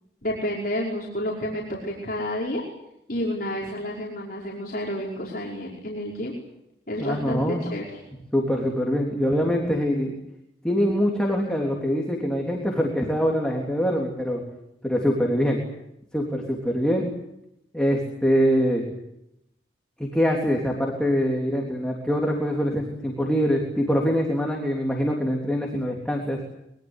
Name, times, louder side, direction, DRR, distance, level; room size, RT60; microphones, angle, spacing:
voice 1, 0.2-2.6 3.1-6.3 6.9-8.0, equal, 50° left, -4 dB, 5.3 m, -30 dB
voice 2, 7.0-7.6 8.3-10.1 10.6-14.4 14.8-15.6 16.1-17.1 17.7-18.9 20.0-26.4, equal, 5° left, -1 dB, 3.5 m, -24 dB
25.0 x 22.5 x 8.3 m, 0.82 s
head